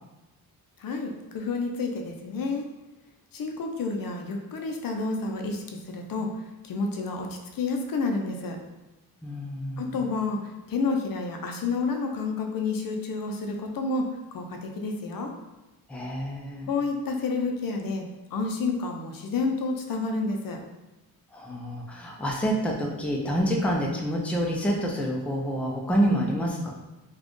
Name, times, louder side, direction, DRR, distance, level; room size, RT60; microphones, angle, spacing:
voice 1, 0.8-2.7 3.3-8.6 9.8-15.3 16.7-18.0 18.3-20.6, left 3 dB, 65° left, 3 dB, 0.6 m, -30 dB
voice 2, 9.2-10.0 15.9-16.7 21.3-26.7, equal, 5° left, -1 dB, 0.4 m, -27 dB
4.1 x 2.3 x 3.1 m, 1.0 s
wide cardioid pair, 135°, 37 cm